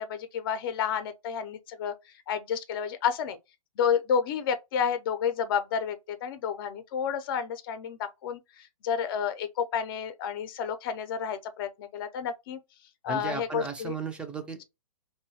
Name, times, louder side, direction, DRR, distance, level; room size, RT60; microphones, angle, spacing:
voice 1, 0.0-1.9 2.3-3.4 3.8-12.6 13.0-13.9, left 7 dB, 40° left, 0.6 m, -30 dB
voice 2, 13.1-14.6, right 5 dB, 5° right, 0.5 m, -35 dB
3.0 x 2.2 x 2.7 m
hypercardioid pair, 130°, 18 cm